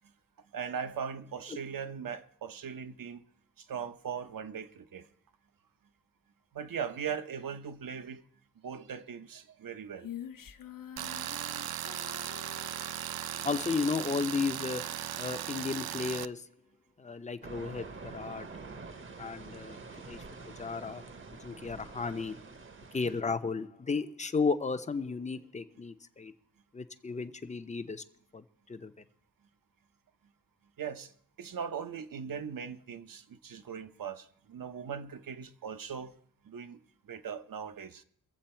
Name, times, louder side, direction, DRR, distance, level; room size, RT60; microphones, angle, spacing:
voice 1, 0.5-3.2 3.6-5.1 6.5-8.2 8.6-10.1 30.8-31.1 31.4-36.1 36.4-36.8 37.0-38.0, right 7 dB, 65° right, 0.9 m, -39 dB
Female singing, 10.0-13.5, left 9 dB, 65° left, 0.7 m, -46 dB
Tools, 11.0-16.3, right 11 dB, 85° right, 0.5 m, -37 dB
voice 2, 13.4-16.5 17.0-18.5 19.2-19.8 20.1-20.2 20.6-21.0 21.4-22.4 22.9-26.3 26.7-28.0 28.3-28.9, left 4 dB, 20° left, 0.6 m, -34 dB
sound 1, 17.4-23.2, right 4 dB, 35° right, 0.9 m, -47 dB
22.5 x 7.8 x 4.4 m
wide cardioid pair, 175°, 36 cm